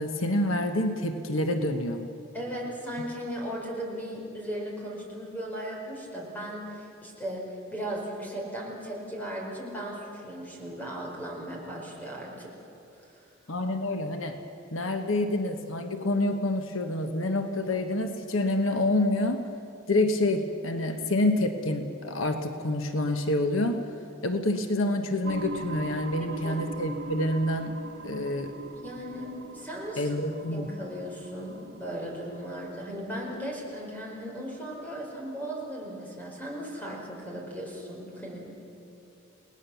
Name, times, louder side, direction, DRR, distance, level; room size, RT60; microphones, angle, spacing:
voice 1, 0.0-2.1 13.5-14.4 14.7-19.5 19.9-23.8 24.2-28.5 30.0-30.7, left 1 dB, 75° left, 6 dB, 1.3 m, -27 dB
voice 2, 2.3-12.5 26.4-26.6 28.8-30.2 30.5-38.6, equal, 10° left, -2 dB, 4.7 m, -37 dB
sound 1, 25.2-34.8, right 2 dB, 85° right, 1.4 m, -42 dB
29.5 x 19.0 x 7.1 m, 2.8 s
head